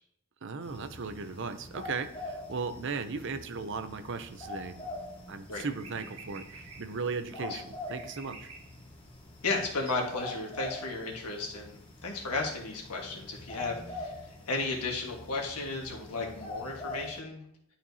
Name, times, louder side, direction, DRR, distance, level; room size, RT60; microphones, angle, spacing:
voice 1, 0.4-4.9 5.3-8.5, right 4 dB, 55° right, 10 dB, 0.6 m, -37 dB
sound 1, 0.6-17.2, left 2 dB, 25° left, 1.2 m, -44 dB
sound 2, 4.3-10.0, right 4 dB, 70° right, 1.5 m, -52 dB
voice 2, 9.4-17.4, left 3 dB, 90° left, 0 dB, 1.6 m, -34 dB
11.0 x 4.3 x 2.8 m, 0.71 s
head